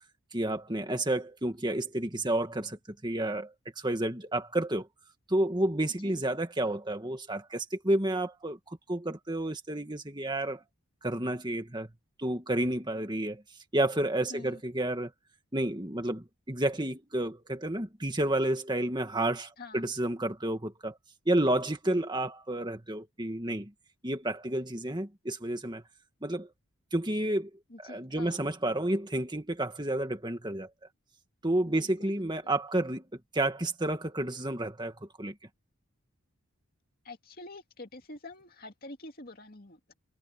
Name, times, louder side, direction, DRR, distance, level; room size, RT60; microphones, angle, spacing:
voice 1, 0.3-4.9 5.3-10.6 11.0-11.9 12.2-13.4 13.7-15.1 15.5-21.0 21.3-23.7 24.0-25.8 26.2-26.5 26.9-27.5 27.8-30.7 31.4-33.0 33.3-35.3, right 1 dB, 20° right, 1.9 m, -30 dB
voice 2, 14.3-14.6 19.6-19.8 27.7-28.4 31.7-32.2 37.0-39.9, left 2 dB, 40° left, 2.5 m, -47 dB
head